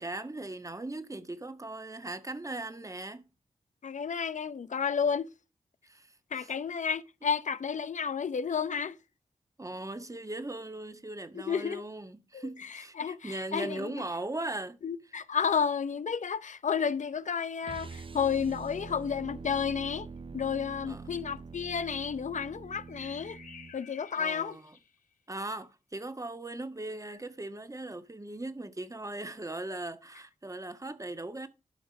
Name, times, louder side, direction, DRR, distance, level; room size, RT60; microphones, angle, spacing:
voice 1, 0.0-3.3 5.8-6.5 7.2-7.3 9.6-14.8 20.9-21.3 24.2-24.8 25.3-31.5, right 2 dB, 25° right, 1.4 m, -39 dB
voice 2, 3.8-5.3 6.3-9.0 11.5-11.8 12.3-13.9 14.8-20.1 20.3-23.4 23.7-24.6, left 6 dB, 70° left, 0.7 m, -31 dB
sound 1, 17.6-23.8, right 4 dB, 40° right, 0.5 m, -45 dB
sound 2, 22.6-25.1 27.0-27.2, left 6 dB, 85° left, 1.3 m, -53 dB
12.0 x 5.1 x 6.0 m
cardioid pair, 50°, 13 cm